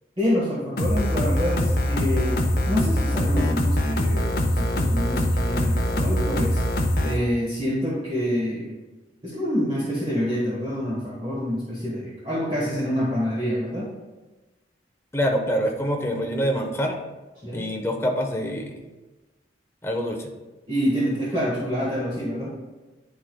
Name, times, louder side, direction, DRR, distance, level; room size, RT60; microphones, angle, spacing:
voice 1, 0.2-2.4 2.7-8.8 9.2-13.9 17.4-17.7 20.7-22.5, equal, 30° right, -7 dB, 1.2 m, -27 dB
sound 1, 0.8-7.2, left 1 dB, 55° left, 0.7 m, -23 dB
voice 2, 15.1-17.0 17.5-18.8 19.8-20.3, equal, 15° left, 2 dB, 0.7 m, -25 dB
10.0 x 4.5 x 2.2 m, 1.2 s
head